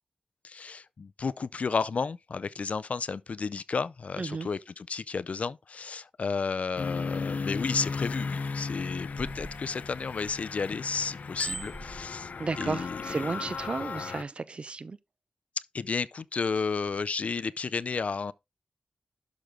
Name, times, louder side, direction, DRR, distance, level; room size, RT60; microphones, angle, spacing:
voice 1, 0.4-12.3 12.6-13.0 15.7-18.3, left 5 dB, 55° left, 0.5 m, -32 dB
voice 2, 4.2-4.5 12.4-15.0, right 4 dB, 40° right, 0.6 m, -33 dB
sound 1, 6.8-14.2, left 4 dB, 70° left, 0.8 m, -35 dB
Bicycle bell, 8.8-10.7 11.1-12.8 13.4-13.6, right 3 dB, 15° right, 1.3 m, -42 dB
11.5 x 6.2 x 3.7 m
wide cardioid pair, 145°, 3 cm